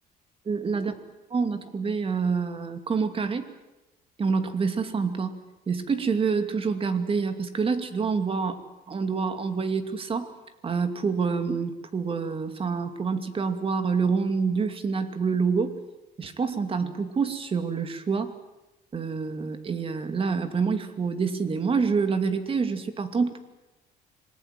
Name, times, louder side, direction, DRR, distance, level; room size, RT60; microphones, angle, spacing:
voice 1, 0.5-0.9 1.3-3.5 4.2-5.4 5.7-8.6 8.9-10.3 10.6-15.8 16.2-18.3 18.9-23.4, right 5 dB, 35° right, 8 dB, 2.6 m, -27 dB
26.5 x 20.5 x 7.8 m, 1.0 s
cardioid pair, 110°, 17 cm